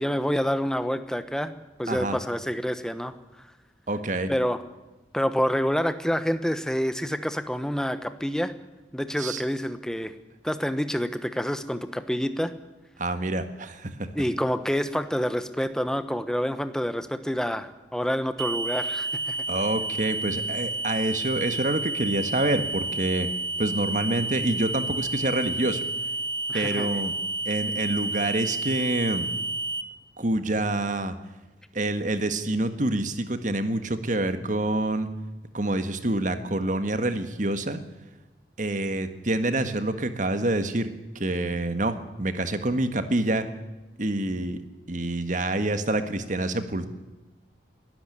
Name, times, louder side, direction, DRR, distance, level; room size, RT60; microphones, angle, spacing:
voice 1, 0.0-1.5 1.8-3.1 4.3-4.6 5.1-8.5 8.9-10.1 10.4-12.5 14.1-19.4 26.5-26.9, equal, 5° left, 11 dB, 1.1 m, -27 dB
voice 2, 1.9-2.2 3.9-4.3 9.2-9.4 13.0-14.1 19.5-23.3 23.6-25.8 26.5-27.1 27.4-29.3 30.2-31.1 31.7-35.1 35.5-37.8 38.6-40.9 41.1-43.5 44.0-44.6 44.9-46.9, right 2 dB, 45° right, 9 dB, 1.7 m, -27 dB
sound 1, 18.4-29.8, right 2 dB, 70° right, 1.2 m, -30 dB
21.5 x 13.0 x 9.9 m, 1.1 s
head